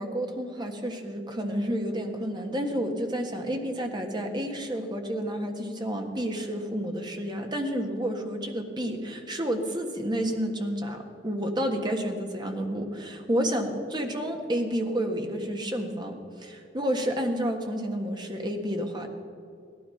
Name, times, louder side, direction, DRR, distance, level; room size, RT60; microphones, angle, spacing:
voice 1, 0.0-19.1, equal, 25° right, 4 dB, 1.5 m, -30 dB
17.0 x 12.0 x 5.7 m, 2.5 s
head